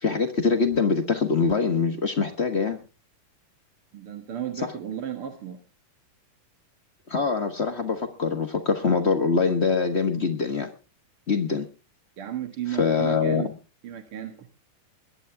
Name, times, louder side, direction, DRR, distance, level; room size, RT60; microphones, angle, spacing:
voice 1, 0.0-2.8 7.1-10.7 11.3-11.7 12.8-13.5, left 4 dB, 90° left, 5 dB, 0.5 m, -24 dB
voice 2, 3.9-5.6 12.2-13.5 13.8-14.5, right 10 dB, 50° right, 5 dB, 2.2 m, -34 dB
22.0 x 11.0 x 3.5 m, 0.33 s
omnidirectional pair, 3.6 m